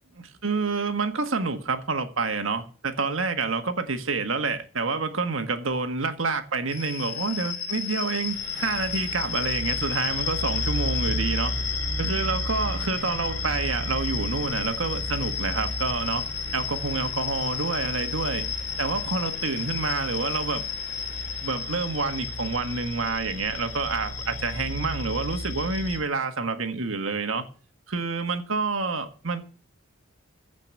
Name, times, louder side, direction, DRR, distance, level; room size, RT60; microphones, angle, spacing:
voice 1, 0.1-11.5 12.0-16.3 16.5-18.4 18.8-20.6 21.4-27.4 27.9-29.4, right 4 dB, 70° right, 1.6 m, -28 dB
sound 1, 6.7-26.0, left 4 dB, 50° left, 3.6 m, -31 dB
15.5 x 5.2 x 8.3 m
head